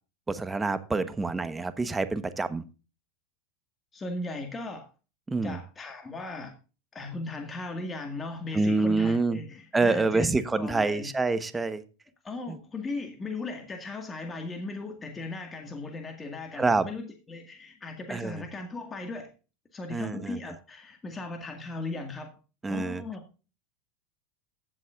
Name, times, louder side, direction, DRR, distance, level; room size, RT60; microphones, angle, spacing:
voice 1, 0.3-2.6 5.3-5.6 8.5-9.4 9.7-11.8 12.5-12.6 16.6-16.9 18.1-18.4 19.9-20.4 22.6-23.0, right 3 dB, 15° right, 12 dB, 1.1 m, -27 dB
voice 2, 3.9-4.9 5.4-6.5 6.9-11.1 11.5-11.7 12.2-19.3 19.7-22.3 22.7-23.2, left 3 dB, 20° left, 4 dB, 1.9 m, -37 dB
15.5 x 7.5 x 2.5 m, 0.33 s
supercardioid pair, 115°, 0 cm